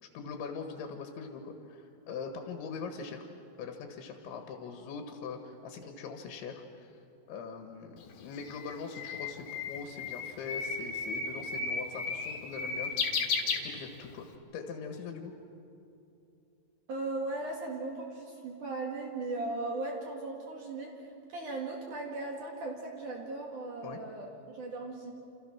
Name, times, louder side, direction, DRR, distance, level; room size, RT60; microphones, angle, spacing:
voice 1, 0.0-3.3 3.6-7.0 7.3-12.9 13.7-14.3 14.5-15.3 23.8-24.0, left 5 dB, 90° left, 4 dB, 3.9 m, -42 dB
Bird, 8.0-14.3, left 4 dB, 60° left, 3.5 m, -34 dB
voice 2, 16.9-20.9 21.3-25.1, right 2 dB, 50° right, 0 dB, 3.0 m, -37 dB
28.0 x 28.0 x 6.1 m, 2.8 s
omnidirectional pair, 5.2 m